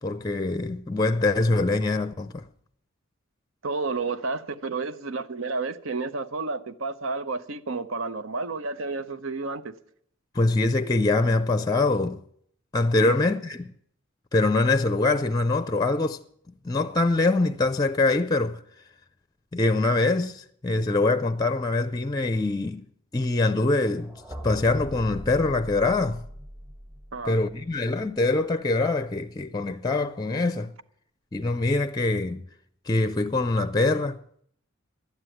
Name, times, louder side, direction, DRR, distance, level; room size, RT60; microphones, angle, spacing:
voice 1, 0.0-2.5 10.3-12.2 12.7-13.7 14.3-16.2 16.6-18.6 19.5-22.9 23.1-24.1 24.4-26.2 27.3-30.7 31.3-32.5 32.9-34.2, left 2 dB, 20° left, 0.5 m, -24 dB
voice 2, 3.6-9.8 13.0-13.2 27.1-27.4, right 3 dB, 70° right, 0.8 m, -31 dB
sound 1, 24.0-27.9, equal, 15° right, 1.2 m, -40 dB
12.0 x 9.6 x 9.0 m
head